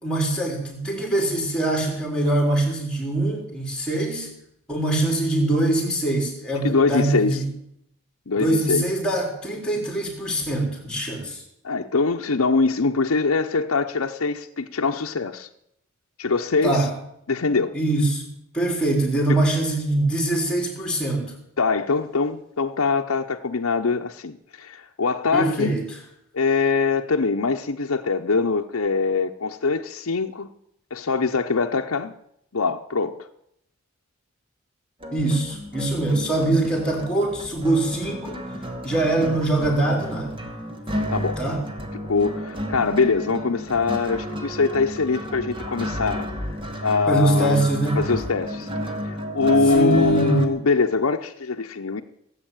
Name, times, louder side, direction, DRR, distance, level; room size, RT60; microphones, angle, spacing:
voice 1, 0.0-4.3 4.7-7.5 8.4-11.4 16.6-16.9 17.7-18.3 18.5-21.3 25.3-26.0 35.1-38.4 38.8-40.3 41.4-41.6 47.1-48.1 49.7-50.4, right 2 dB, 5° left, 3.8 m, -23 dB
voice 2, 6.6-7.4 8.3-8.9 11.6-15.5 16.2-16.9 17.3-17.7 21.6-25.8 26.3-30.5 30.9-32.1 32.5-33.3 41.1-41.4 42.0-47.6 48.0-48.7 49.0-52.0, left 4 dB, 80° left, 0.8 m, -23 dB
sound 1, 35.0-50.5, equal, 25° right, 1.8 m, -32 dB
18.0 x 8.2 x 9.1 m
head